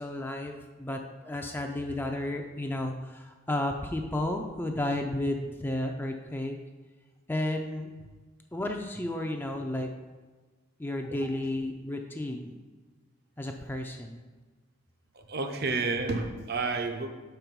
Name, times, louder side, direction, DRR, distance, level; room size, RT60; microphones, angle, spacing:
voice 1, 0.0-6.6 7.3-7.9 8.5-9.9 10.8-12.6 13.4-14.2, left 1 dB, 10° left, 3 dB, 0.4 m, -32 dB
voice 2, 15.1-17.1, right 3 dB, 50° right, 6 dB, 0.6 m, -30 dB
6.3 x 4.6 x 5.2 m, 1.3 s
head